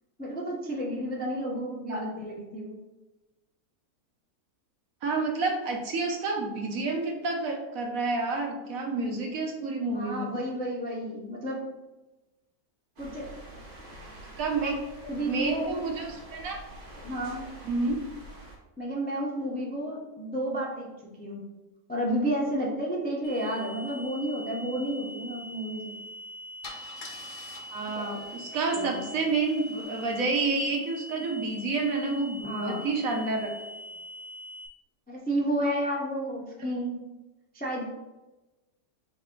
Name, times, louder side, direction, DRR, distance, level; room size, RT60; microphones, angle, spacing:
voice 1, 0.2-2.7 9.9-11.6 13.0-13.3 14.6-14.7 15.0-15.8 17.0-17.4 18.8-20.9 21.2-21.4 21.9-25.9 28.5-29.1 32.4-32.9 35.1-37.0 37.5-37.9, right 1 dB, 15° left, -3 dB, 0.3 m, -31 dB
voice 2, 5.0-10.3 14.4-14.8 15.3-16.6 17.7-18.0 27.7-33.5, right 3 dB, 65° right, 1 dB, 1.2 m, -29 dB
sound 1, 13.0-18.6, right 1 dB, 40° right, 1.0 m, -46 dB
sound 2, 23.2-34.7, equal, 65° left, 1.2 m, -43 dB
Car / Engine starting / Idling, 25.9-26.1 26.6-30.5, left 2 dB, 50° left, 0.6 m, -48 dB
4.1 x 3.3 x 3.7 m, 1.1 s
omnidirectional pair, 1.6 m